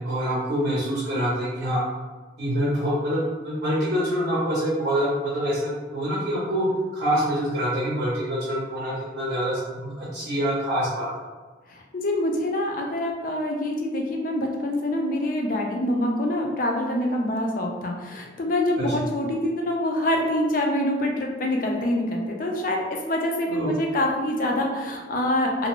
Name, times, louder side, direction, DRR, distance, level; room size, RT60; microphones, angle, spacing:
voice 1, 0.0-1.8 2.4-6.7 6.9-11.1 18.8-18.9 23.5-23.7, equal, 50° right, -7 dB, 0.6 m, -26 dB
voice 2, 11.7-25.7, left 1 dB, 45° left, 1 dB, 0.4 m, -25 dB
2.5 x 2.0 x 2.9 m, 1.3 s
head